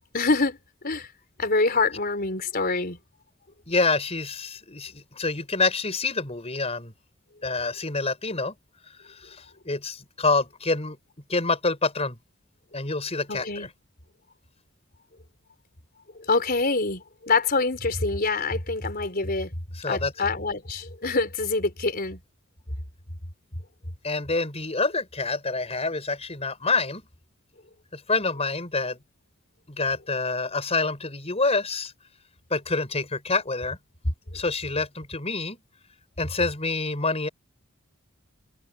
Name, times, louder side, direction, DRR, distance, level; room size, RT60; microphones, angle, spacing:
voice 1, 0.1-0.6 0.8-1.1 1.4-3.0 13.3-13.7 16.1-19.6 19.9-22.2, left 3 dB, 45° left, 4.3 m, -25 dB
voice 2, 3.7-6.9 7.4-8.5 8.9-11.0 11.3-12.2 12.7-13.7 19.8-20.1 24.0-27.0 27.9-29.0 29.7-31.9 32.5-33.8 34.3-35.6 36.2-37.3, left 3 dB, 30° left, 5.5 m, -27 dB
head